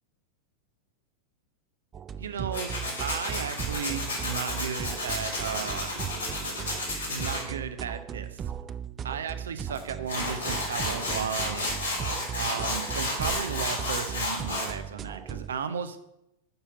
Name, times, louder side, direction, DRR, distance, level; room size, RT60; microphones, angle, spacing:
sound 1, 1.9-15.6, right 8 dB, 25° right, 0.3 m, -37 dB
voice 1, 2.2-2.7 3.0-6.0 7.1-8.4 9.0-11.7 12.3-16.0, right 7 dB, 65° right, 11 dB, 0.6 m, -35 dB
Tools, 2.5-7.4 9.7-9.8 10.1-14.7, left 2 dB, 75° left, 2.7 m, -32 dB
6.7 x 5.6 x 5.7 m, 0.84 s
figure-of-eight pair, 90°, 0 cm